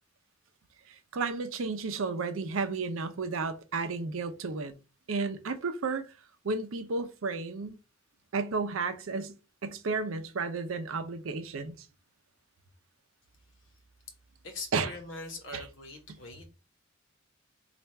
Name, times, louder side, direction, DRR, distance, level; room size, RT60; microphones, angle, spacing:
voice 1, 1.1-4.7 5.1-6.1 6.4-7.8 8.3-9.3 9.6-11.8 14.7-14.9 15.5-15.6, right 4 dB, 85° right, 0.6 m, -32 dB
voice 2, 14.4-16.5, left 3 dB, 65° left, 1.0 m, -42 dB
3.4 x 2.4 x 4.2 m
head